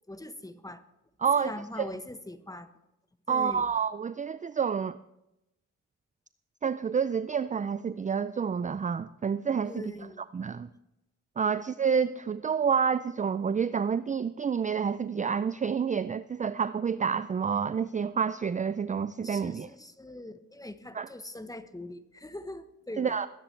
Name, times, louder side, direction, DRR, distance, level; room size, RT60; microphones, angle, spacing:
voice 1, 0.1-0.8 1.4-2.7 3.3-3.6 9.7-10.2 19.2-23.2, left 1 dB, 10° left, 10 dB, 1.1 m, -42 dB
voice 2, 1.2-1.9 3.3-5.0 6.6-9.9 10.3-10.7 11.4-19.7 20.9-21.1 23.0-23.3, right 6 dB, 25° right, 15 dB, 0.4 m, -29 dB
20.5 x 9.8 x 3.3 m, 0.90 s
cardioid pair, 65°, 32 cm